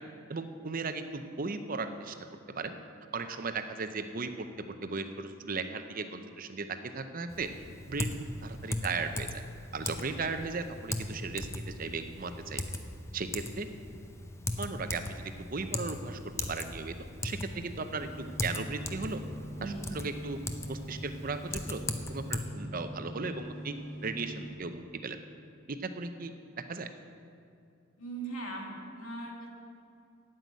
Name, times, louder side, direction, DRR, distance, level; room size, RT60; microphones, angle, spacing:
voice 1, 0.3-2.1 2.5-2.8 3.1-7.5 7.9-8.1 8.4-9.3 9.7-11.5 11.8-12.6 13.1-13.7 14.6-16.2 16.5-17.0 17.2-19.2 19.6-20.4 20.7-21.8 22.1-23.7 24.0-25.2 25.7-26.9, right 4 dB, 40° right, 8 dB, 0.7 m, -36 dB
Typing, 7.3-22.4, left 2 dB, 15° left, 0.6 m, -39 dB
sound 1, 17.9-24.5, right 1 dB, 55° left, 3.3 m, -43 dB
voice 2, 28.0-29.5, right 2 dB, 90° left, -1 dB, 2.4 m, -39 dB
9.2 x 7.9 x 9.1 m, 2.5 s
head